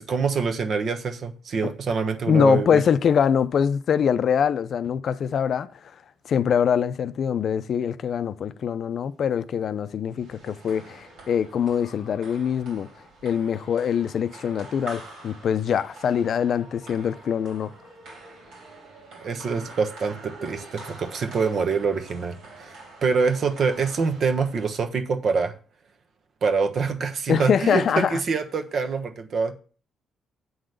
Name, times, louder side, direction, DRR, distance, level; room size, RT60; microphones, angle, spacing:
voice 1, 0.0-2.8 19.2-25.5 26.4-29.5, right 5 dB, 55° right, 1.1 m, -25 dB
voice 2, 2.3-5.7 6.3-12.9 13.2-17.7 27.3-28.2, left 7 dB, 60° left, 0.5 m, -23 dB
sound 1, 10.1-24.9, right 2 dB, 80° right, 3.2 m, -45 dB
7.9 x 3.8 x 6.5 m
cardioid pair, 90°, 0 cm